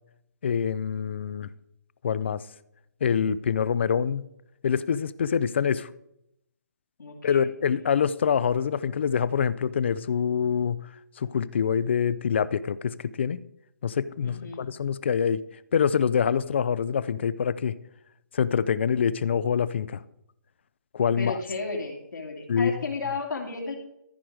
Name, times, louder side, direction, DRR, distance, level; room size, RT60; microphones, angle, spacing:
voice 1, 0.4-1.5 2.0-2.4 3.0-4.2 4.6-5.9 7.2-10.8 11.2-13.4 13.8-15.4 15.7-17.7 18.3-20.0 20.9-21.4 22.5-22.8, left 7 dB, 35° left, 18 dB, 0.3 m, -25 dB
voice 2, 7.0-7.5 14.2-14.6 21.2-23.7, left 4 dB, 80° left, 2 dB, 2.6 m, -33 dB
14.0 x 4.8 x 4.7 m, 0.81 s
hypercardioid pair, 165°, 10 cm